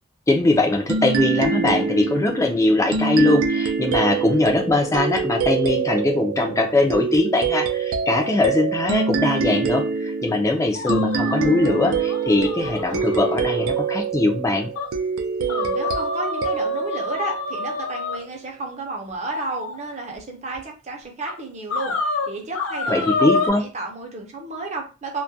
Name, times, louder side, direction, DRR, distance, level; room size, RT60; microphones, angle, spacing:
voice 1, 0.3-14.7 22.9-23.6, left 2 dB, 15° left, 3 dB, 0.3 m, -21 dB
sound 1, 0.9-18.1, right 5 dB, 90° right, 0.4 m, -25 dB
sound 2, 10.7-13.7 14.1-14.2 14.7-14.9 15.5-18.2 19.2-19.8 20.5-20.6 21.3-21.4 21.7-23.5, left 4 dB, 85° left, 0.6 m, -28 dB
voice 2, 15.4-25.2, right 3 dB, 35° right, 1 dB, 0.5 m, -32 dB
2.2 x 2.1 x 2.6 m, 0.34 s
head